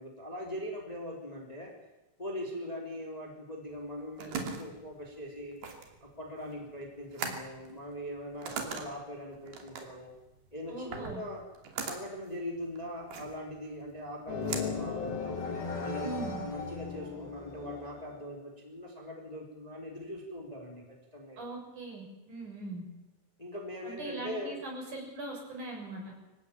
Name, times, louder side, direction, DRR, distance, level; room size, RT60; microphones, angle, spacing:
voice 1, 0.0-1.7 2.2-5.6 6.0-10.1 10.5-11.4 11.9-15.4 15.8-21.4 23.4-24.6, equal, 10° left, 1 dB, 3.5 m, -41 dB
sound 1, 3.8-15.7, right 5 dB, 65° right, 4.7 m, -42 dB
voice 2, 10.7-11.2 16.0-16.4 21.4-22.8 23.8-26.1, right 2 dB, 45° right, 0 dB, 8.2 m, -40 dB
sound 2, 14.3-18.2, left 5 dB, 60° left, 4.9 m, -37 dB
25.5 x 16.0 x 8.9 m, 1.0 s
omnidirectional pair, 4.8 m